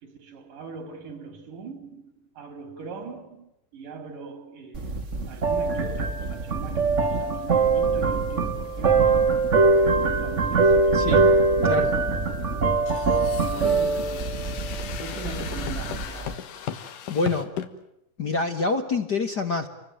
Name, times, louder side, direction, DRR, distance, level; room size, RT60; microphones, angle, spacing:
voice 1, 0.0-11.4 12.9-14.7 15.0-16.5, right 5 dB, 80° right, 4.6 m, -40 dB
sound 1, 4.7-16.3, right 3 dB, 40° right, 1.1 m, -23 dB
voice 2, 10.9-11.3 11.6-12.0 17.1-17.5 18.2-19.7, left 3 dB, 45° left, 1.5 m, -26 dB
sound 2, 12.9-17.7, left 9 dB, 85° left, 3.1 m, -36 dB
28.0 x 22.5 x 9.1 m
omnidirectional pair, 3.6 m